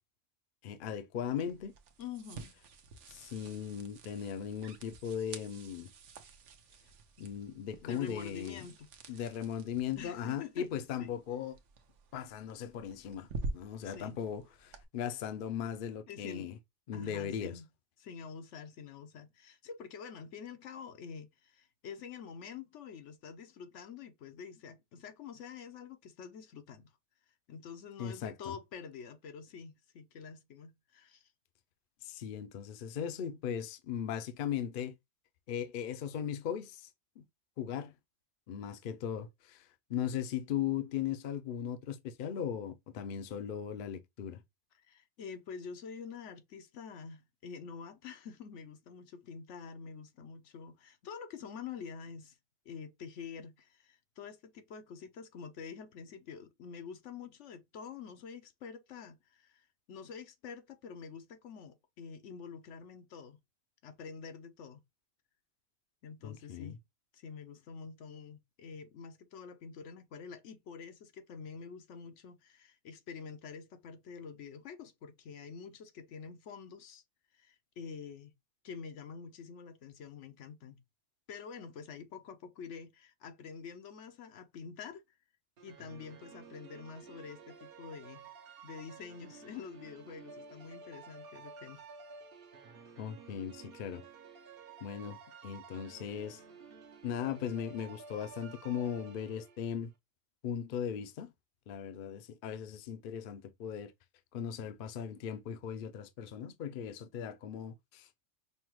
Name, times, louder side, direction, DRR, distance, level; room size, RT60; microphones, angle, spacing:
voice 1, 0.6-1.7 3.1-5.9 7.2-8.7 9.1-11.6 12.1-16.6 16.9-17.6 28.0-28.5 32.0-34.9 35.5-36.9 37.2-37.3 37.6-37.9 38.5-44.4 66.2-66.8 93.0-94.0 94.8-95.2 95.4-96.4 97.0-99.9 100.4-101.3 101.7-103.9 104.3-108.1, left 9 dB, 60° left, 0.6 m, -38 dB
sound 1, 1.3-14.8, right 3 dB, 80° right, 1.0 m, -48 dB
voice 2, 2.0-2.5 7.8-8.9 10.0-10.7 11.0-11.1 13.8-14.2 16.1-16.5 16.9-17.7 18.0-26.9 27.5-31.3 44.8-52.4 52.7-63.4 63.8-64.8 66.0-66.8 67.1-77.0 77.3-78.3 78.6-80.8 81.3-85.0 85.6-88.3 88.6-91.8, left 6 dB, 80° left, 1.0 m, -47 dB
sound 2, 85.6-99.9, right 5 dB, 55° right, 1.0 m, -52 dB
5.5 x 2.2 x 3.0 m
omnidirectional pair, 1.2 m